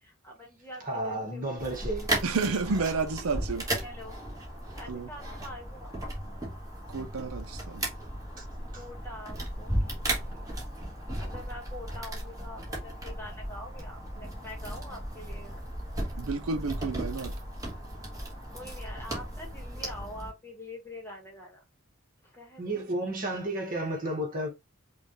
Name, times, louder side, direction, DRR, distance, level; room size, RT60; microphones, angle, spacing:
voice 1, 0.0-1.5 3.8-4.2 4.7-5.9 8.7-10.6 11.2-15.7 18.5-21.6 22.2-24.1, left 1 dB, 10° left, 1.4 m, -45 dB
voice 2, 0.8-2.1 8.4-8.5 8.7-8.8 22.6-24.5, right 1 dB, 40° right, 1.4 m, -32 dB
sound 1, 1.6-20.3, right 1 dB, 15° right, 1.4 m, -36 dB
voice 3, 2.2-3.7 4.9-5.1 6.9-7.9 16.2-17.3, right 4 dB, 80° right, 0.6 m, -31 dB
5.4 x 2.4 x 3.0 m
head